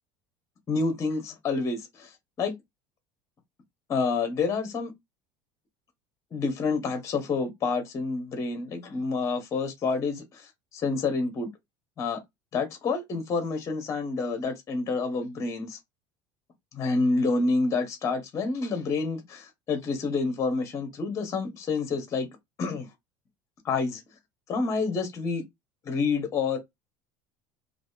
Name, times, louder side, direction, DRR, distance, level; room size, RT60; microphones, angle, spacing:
voice 1, 0.7-2.1 2.4-2.5 3.9-4.9 6.3-11.5 12.0-12.2 12.5-15.8 16.7-22.3 22.6-22.9 23.6-24.0 24.5-25.4 25.8-26.6, left 4 dB, 30° left, 0.9 m, -28 dB
2.7 x 2.4 x 2.2 m
cardioid pair, 130°, 10 cm